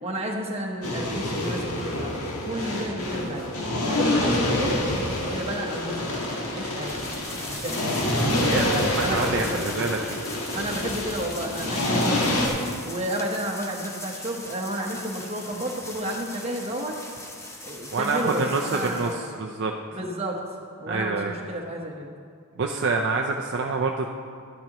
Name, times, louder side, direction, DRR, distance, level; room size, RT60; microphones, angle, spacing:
voice 1, 0.0-3.5 3.9-4.8 5.2-7.9 8.4-9.9 10.5-12.5 12.8-16.9 17.6-19.4 19.9-20.4 20.8-22.1, right 1 dB, 25° right, -1 dB, 1.1 m, -32 dB
sound 1, 0.8-12.5, left 1 dB, 75° left, 1.4 m, -27 dB
sound 2, 6.8-19.2, left 1 dB, 10° left, 0.6 m, -40 dB
voice 2, 8.5-10.2 17.9-19.7 20.9-21.3 22.6-24.1, right 4 dB, 50° right, 2 dB, 0.5 m, -26 dB
12.5 x 10.5 x 3.0 m, 2.2 s
head